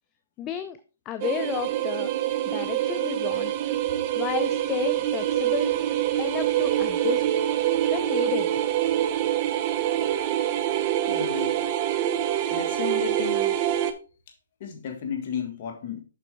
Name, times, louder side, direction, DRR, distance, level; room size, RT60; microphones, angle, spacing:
voice 1, 0.4-0.8 1.1-2.1 2.5-3.5 4.1-5.7 6.2-7.2 7.9-8.5, left 11 dB, 20° left, 11 dB, 0.5 m, -32 dB
sound 1, 1.2-13.9, right 12 dB, 35° right, 0.8 m, -25 dB
voice 2, 11.1-11.6 12.5-13.6 14.6-16.0, left 7 dB, 45° left, 4 dB, 1.6 m, -33 dB
7.5 x 6.0 x 3.4 m, 0.35 s
hypercardioid pair, 150°, 0 cm